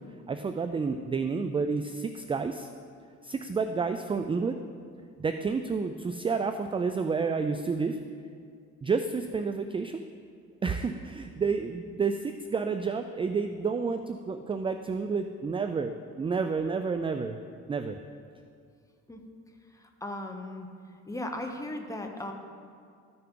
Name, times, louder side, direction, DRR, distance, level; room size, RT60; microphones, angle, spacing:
voice 1, 0.3-2.7 3.2-4.6 5.2-8.0 8.8-10.0 10.6-17.4 17.7-18.0, right 5 dB, 20° right, 8 dB, 0.3 m, -30 dB
voice 2, 19.8-20.7 21.0-22.3, left 1 dB, 10° left, 3 dB, 1.0 m, -37 dB
13.5 x 5.8 x 3.8 m, 2.3 s
cardioid pair, 90°, 30 cm